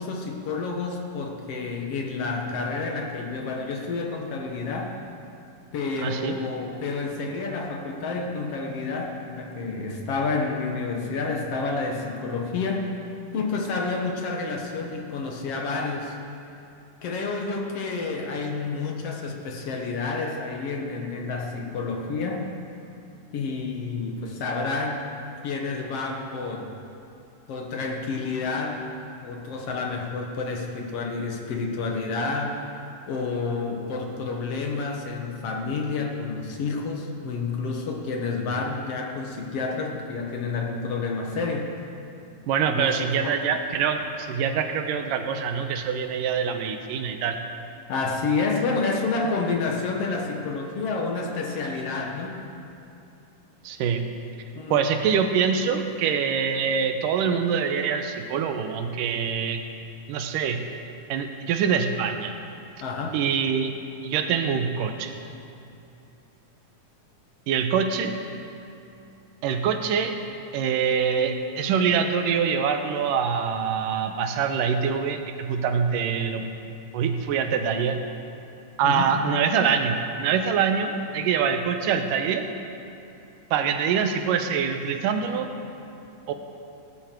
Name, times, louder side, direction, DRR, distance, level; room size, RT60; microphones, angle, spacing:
voice 1, 0.0-5.0 5.7-12.9 13.3-16.1 17.0-22.5 23.3-25.1 25.4-26.7 27.5-28.8 29.2-32.6 33.1-41.7 42.7-43.4 47.9-52.4 54.5-54.8 62.8-63.2 78.8-79.2, left 4 dB, 55° left, 1 dB, 2.0 m, -29 dB
voice 2, 6.0-6.4 42.5-47.4 53.6-54.1 54.7-59.6 60.1-60.7 61.1-62.3 63.1-63.7 64.0-65.1 67.5-68.1 69.4-70.1 70.5-76.5 76.9-78.0 78.8-82.5 83.5-85.5 86.3-86.4, right 6 dB, 90° right, 6 dB, 2.5 m, -24 dB
18.0 x 12.0 x 4.6 m, 2.7 s
omnidirectional pair, 3.7 m